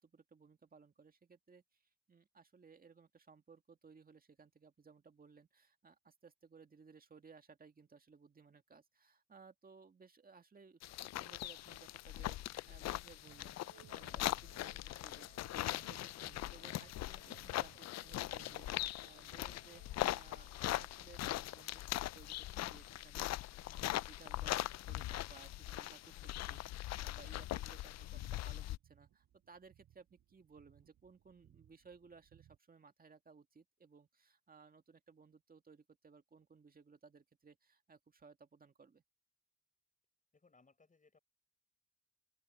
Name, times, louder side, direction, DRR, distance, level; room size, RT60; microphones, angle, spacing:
voice 1, 0.0-39.0, right 5 dB, 30° right, 2.0 m, -61 dB
sound 1, 10.8-28.8, left 15 dB, 60° left, 0.4 m, -41 dB
sound 2, 13.2-32.6, right 11 dB, 70° right, 6.2 m, -66 dB
voice 2, 17.2-17.9 40.3-41.2, left 4 dB, 25° left, 6.7 m, -68 dB
open air
cardioid pair, 90°, 30 cm